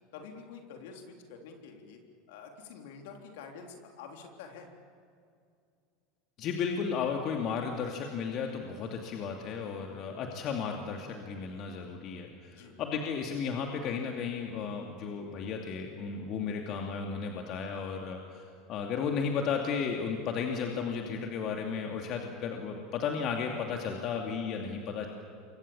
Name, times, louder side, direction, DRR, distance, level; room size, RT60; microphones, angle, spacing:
voice 1, 0.1-2.0 2.3-4.7 12.5-12.8, left 5 dB, 65° left, 3 dB, 3.6 m, -47 dB
voice 2, 6.4-25.1, left 6 dB, 50° left, 2 dB, 2.5 m, -34 dB
28.5 x 24.5 x 7.1 m, 2.3 s
hypercardioid pair, 80°, 0 cm